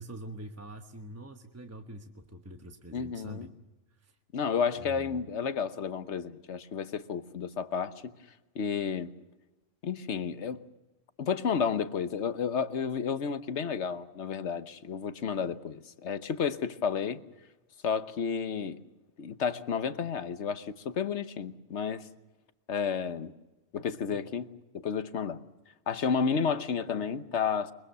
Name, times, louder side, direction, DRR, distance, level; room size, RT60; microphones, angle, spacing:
voice 1, 0.0-3.5 4.0-4.1 4.8-5.2, right 1 dB, 15° right, 1.1 m, -45 dB
voice 2, 2.9-3.5 4.3-8.1 8.5-9.1 9.8-10.6 11.2-17.2 17.8-18.8 19.2-22.1 22.7-23.3 23.7-25.4 25.9-27.7, left 6 dB, 65° left, 1.3 m, -31 dB
23.5 x 23.0 x 6.8 m
omnidirectional pair, 1.3 m